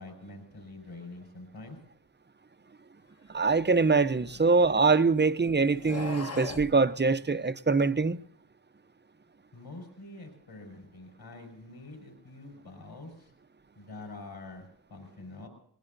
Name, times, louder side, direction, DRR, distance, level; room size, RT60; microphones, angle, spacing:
voice 1, 0.0-1.8 4.3-4.4 9.5-13.3 13.8-15.5, left 2 dB, 55° left, 5.1 m, -46 dB
voice 2, 3.3-8.2, right 4 dB, 25° right, 0.6 m, -24 dB
sound 1, 3.5-5.0 5.7-6.7, left 3 dB, 35° left, 1.1 m, -40 dB
21.0 x 20.0 x 2.6 m
wide cardioid pair, 110°, 46 cm